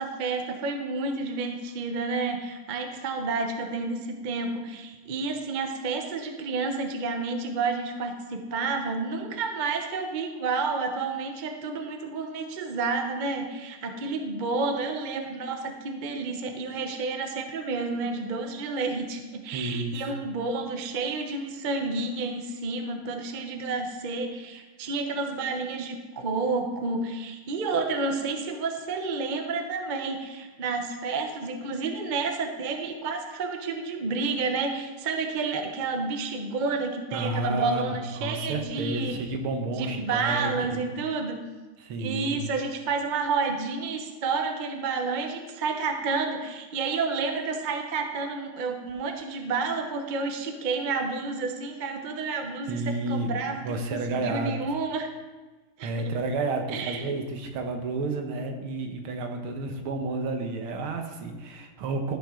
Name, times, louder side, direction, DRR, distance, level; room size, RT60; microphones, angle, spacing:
voice 1, 0.0-39.1 39.6-41.4 42.0-55.1 55.8-56.2 56.7-57.0, right 4 dB, 60° right, 4 dB, 0.5 m, -30 dB
voice 2, 19.5-20.1 37.1-40.8 41.8-42.4 52.7-54.5 55.8-62.2, right 2 dB, 85° right, 4 dB, 1.9 m, -31 dB
14.0 x 5.9 x 3.8 m, 1.3 s
omnidirectional pair, 2.3 m